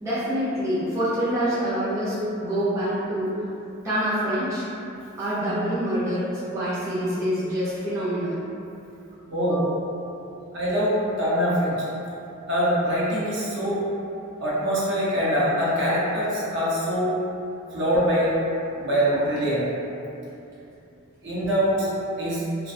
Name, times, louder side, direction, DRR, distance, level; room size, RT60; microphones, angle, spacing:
voice 1, 0.0-3.4 3.8-4.7 5.2-8.4, equal, 15° right, -12 dB, 0.5 m, -26 dB
voice 2, 9.3-9.7 10.5-11.8 12.5-13.8 14.4-17.1 17.7-18.3 18.8-19.7 21.2-21.9 22.2-22.5, equal, 55° right, -8 dB, 0.6 m, -23 dB
2.3 x 2.2 x 2.6 m, 2.7 s
head